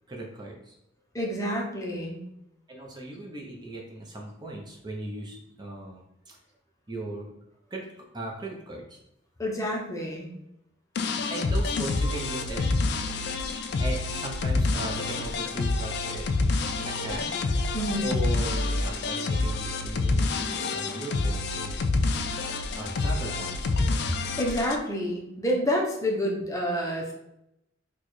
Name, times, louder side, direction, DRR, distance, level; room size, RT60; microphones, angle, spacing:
voice 1, 0.1-0.8 2.7-6.4 6.9-7.3 7.7-7.9 8.1-9.0 11.3-12.6 13.8-16.3 16.8-17.4 18.0-21.9 22.7-23.7, right 1 dB, 25° right, -1 dB, 0.5 m, -37 dB
voice 2, 1.1-2.2 9.4-10.3 17.7-18.1 24.4-27.1, equal, 15° left, -1 dB, 0.6 m, -28 dB
sound 1, 11.0-24.8, left 3 dB, 60° left, 0.3 m, -27 dB
4.4 x 2.2 x 3.0 m, 0.84 s
head